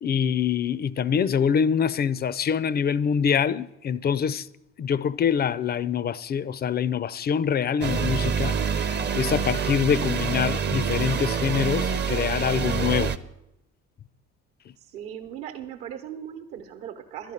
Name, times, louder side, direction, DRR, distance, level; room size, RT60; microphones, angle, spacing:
voice 1, 0.0-4.5 4.8-13.2, left 7 dB, 25° left, 0.4 m, -25 dB
sound 1, 7.8-13.2, right 6 dB, 25° right, 0.6 m, -26 dB
voice 2, 14.8-17.3, right 9 dB, 60° right, 1.0 m, -38 dB
12.0 x 6.0 x 9.3 m
figure-of-eight pair, 45°, 39 cm